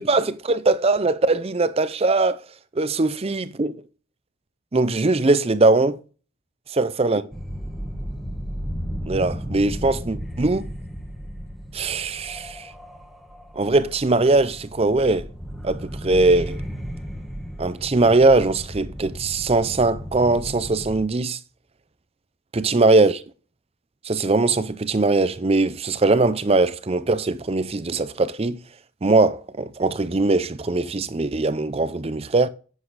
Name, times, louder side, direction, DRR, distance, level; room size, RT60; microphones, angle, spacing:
voice 1, 0.0-2.4 2.8-3.8 4.7-6.0 6.7-7.2 9.1-10.7 11.7-12.7 13.6-15.3 15.6-16.6 17.6-21.4 22.5-23.2 24.0-28.6 29.0-32.5, right 3 dB, 25° right, 0.5 m, -21 dB
sound 1, 7.3-21.1, equal, ahead, 1.4 m, -34 dB
9.8 x 8.2 x 4.0 m
head